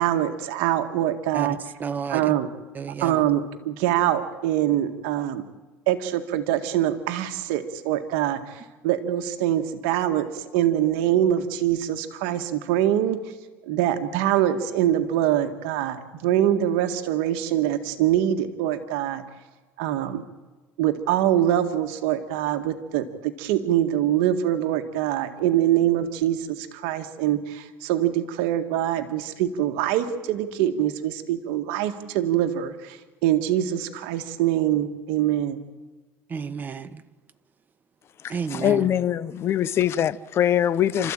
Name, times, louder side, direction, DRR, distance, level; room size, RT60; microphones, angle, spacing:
voice 1, 0.0-1.6 2.1-2.5 3.0-5.4 5.9-13.2 13.7-19.2 19.8-20.2 20.8-35.6, right 11 dB, 85° right, 1.8 m, -24 dB
voice 2, 1.3-2.4 2.7-3.2 36.3-37.0 38.3-38.9, right 6 dB, 30° right, 1.3 m, -32 dB
voice 3, 38.2-41.1, left 10 dB, 45° left, 0.9 m, -23 dB
29.5 x 14.0 x 9.0 m
supercardioid pair, 110°, 6 cm